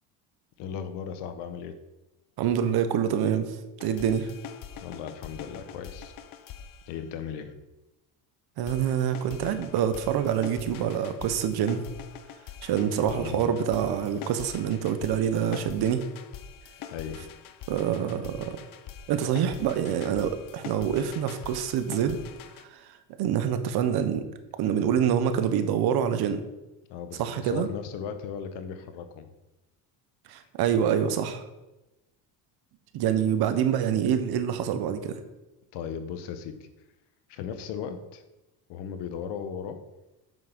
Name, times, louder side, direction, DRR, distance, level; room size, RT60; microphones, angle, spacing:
voice 1, 0.6-1.8 4.8-6.1 6.9-7.5 13.0-13.6 16.9-17.3 26.9-29.3 35.7-36.6 37.3-38.2 38.7-39.8, left 7 dB, 75° left, 9 dB, 1.2 m, -37 dB
voice 2, 2.4-3.6 3.8-4.3 8.6-11.9 12.6-16.0 17.7-18.6 19.1-22.2 22.7-22.8 23.2-24.3 24.6-26.4 27.2-27.7 30.3-31.4 32.9-35.2, right 8 dB, 60° right, 9 dB, 1.1 m, -26 dB
sound 1, 3.8-7.5 8.7-22.6, left 8 dB, 50° left, 0.8 m, -44 dB
7.5 x 6.2 x 5.4 m, 1.0 s
cardioid pair, 120°, 42 cm